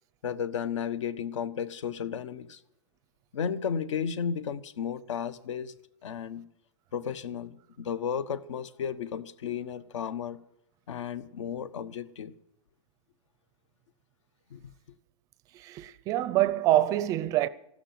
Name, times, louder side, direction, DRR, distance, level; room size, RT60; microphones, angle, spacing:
voice 1, 0.2-2.6 3.3-5.7 6.0-6.5 6.9-10.4 10.9-12.3 14.5-14.6, left 7 dB, 75° left, 1.2 m, -33 dB
voice 2, 15.5-17.5, right 14 dB, 20° right, 0.5 m, -25 dB
14.5 x 12.5 x 7.5 m
supercardioid pair, 160°, 16 cm